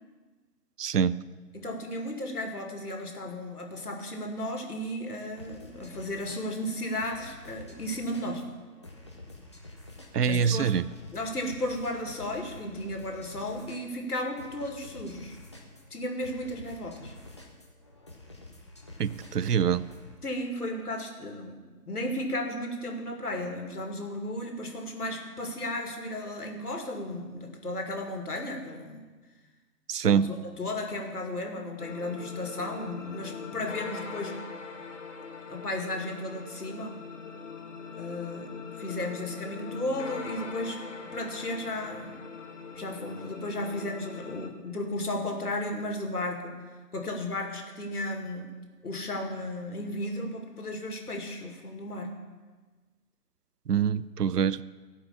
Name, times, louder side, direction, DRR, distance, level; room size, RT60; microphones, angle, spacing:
voice 1, 0.8-1.1 10.1-10.8 19.0-19.8 29.9-30.4 53.7-54.6, right 7 dB, 75° right, 18 dB, 0.6 m, -25 dB
voice 2, 1.5-8.4 10.3-10.7 11.1-15.4 15.9-17.1 20.2-21.6 21.9-29.0 30.0-34.4 35.5-37.0 38.0-42.2 42.7-46.5 46.9-48.5 48.8-52.1, left 1 dB, 70° left, 3 dB, 2.3 m, -34 dB
sound 1, 5.4-20.1, left 2 dB, 20° left, 0.7 m, -49 dB
sound 2, 31.8-44.5, left 5 dB, 50° left, 1.4 m, -41 dB
14.0 x 5.7 x 7.1 m, 1.3 s
figure-of-eight pair, 155°, 48 cm